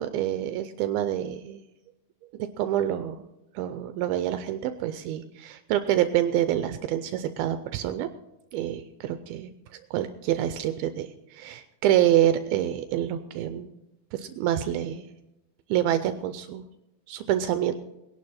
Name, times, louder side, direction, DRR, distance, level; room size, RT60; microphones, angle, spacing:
voice 1, 0.0-1.6 2.6-3.2 3.6-8.1 8.5-9.5 9.9-13.7 14.1-15.0 15.7-16.6 17.1-17.7, right 11 dB, 80° right, 10 dB, 2.4 m, -27 dB
19.5 x 11.0 x 4.2 m, 0.97 s
omnidirectional pair, 4.4 m